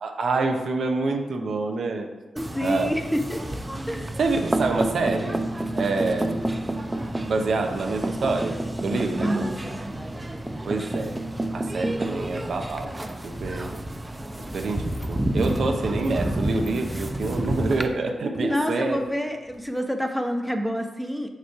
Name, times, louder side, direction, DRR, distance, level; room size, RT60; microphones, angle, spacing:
voice 1, 0.0-2.1 2.6-2.9 4.2-5.4 5.7-6.5 7.3-9.4 10.6-11.1 11.5-12.9 13.2-13.7 14.5-19.0, right 3 dB, 70° right, 3 dB, 0.8 m, -27 dB
voice 2, 2.3-3.4 3.9-4.2 8.9-9.9 18.4-21.3, equal, ahead, 4 dB, 0.9 m, -28 dB
sound 1, 2.4-17.9, right 1 dB, 20° right, 0.7 m, -30 dB
Walk footsteps, 13.8-14.0 14.4-14.7 15.0-19.6, left 2 dB, 50° left, 1.1 m, -46 dB
6.6 x 3.2 x 5.6 m, 1.1 s
supercardioid pair, 45°, 0 cm